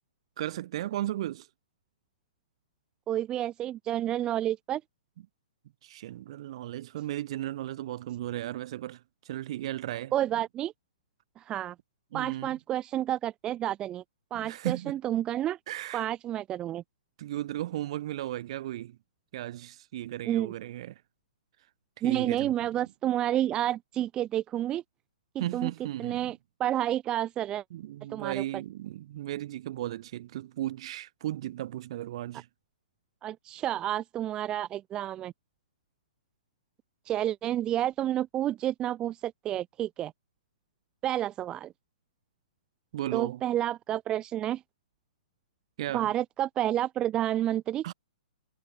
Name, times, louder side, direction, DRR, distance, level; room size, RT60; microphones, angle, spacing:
voice 1, 0.4-1.5 5.8-10.1 12.1-12.6 14.3-15.0 15.7-16.1 17.2-19.0 19.3-20.9 22.0-22.5 25.4-26.3 27.7-32.5 42.9-43.4 45.8-46.1 47.8-47.9, right 13 dB, 45° right, 6.3 m, -35 dB
voice 2, 3.1-4.8 10.1-10.7 11.4-11.7 12.1-14.0 14.3-15.6 15.9-16.8 20.3-20.5 22.0-24.8 25.3-25.7 26.0-27.6 28.1-28.4 33.2-35.3 37.0-40.1 41.0-41.7 43.1-44.6 45.9-47.9, right 12 dB, 20° right, 0.9 m, -30 dB
figure-of-eight pair, 120°, 4 cm